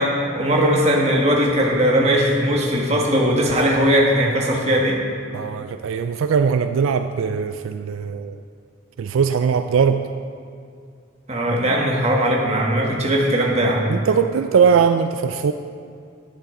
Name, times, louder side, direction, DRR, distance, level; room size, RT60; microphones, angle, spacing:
voice 1, 0.0-5.0 11.3-13.9, equal, 30° right, -1 dB, 1.4 m, -19 dB
voice 2, 5.3-8.4 9.0-10.0 13.9-15.5, right 6 dB, 80° right, 9 dB, 0.3 m, -20 dB
11.0 x 9.4 x 3.8 m, 2.3 s
head